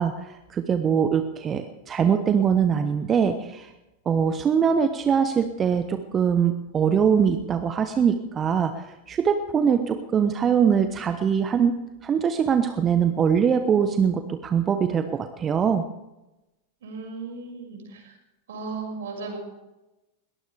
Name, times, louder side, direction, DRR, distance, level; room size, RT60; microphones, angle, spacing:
voice 1, 0.0-3.7 4.0-15.8, right 7 dB, 25° right, 8 dB, 1.1 m, -22 dB
voice 2, 16.8-18.2 18.5-19.4, right 4 dB, 60° right, 2 dB, 6.2 m, -36 dB
21.5 x 19.0 x 3.5 m, 1.0 s
figure-of-eight pair, 90°, 0 cm